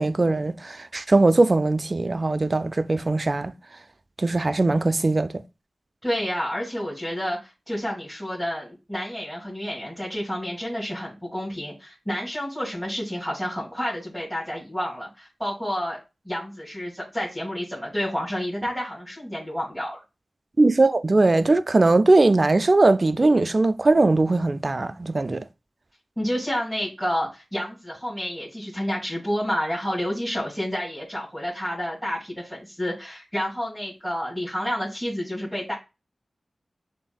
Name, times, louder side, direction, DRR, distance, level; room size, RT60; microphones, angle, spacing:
voice 1, 0.0-3.5 4.2-5.3 20.6-25.4, right 2 dB, 40° right, 0.3 m, -20 dB
voice 2, 6.0-16.0 16.2-20.0 26.2-35.7, equal, 5° left, 2.5 m, -29 dB
6.9 x 2.6 x 2.3 m
wide cardioid pair, 70°, 0 cm